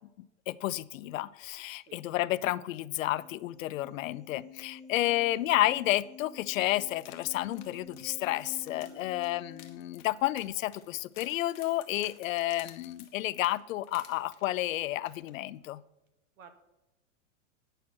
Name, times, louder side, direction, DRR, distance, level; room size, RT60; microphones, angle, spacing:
voice 1, 0.5-15.8, left 15 dB, 85° left, 19 dB, 0.5 m, -31 dB
sound 1, 3.1-9.9, left 5 dB, 5° left, 1.8 m, -50 dB
sound 2, 7.0-14.7 15.1-15.3 15.6-15.7, left 11 dB, 45° left, 1.1 m, -54 dB
voice 2, 8.8-9.1 16.4-16.5, right 6 dB, 85° right, 7 dB, 1.5 m, -53 dB
9.1 x 4.3 x 5.9 m, 0.99 s
supercardioid pair, 160°, 39 cm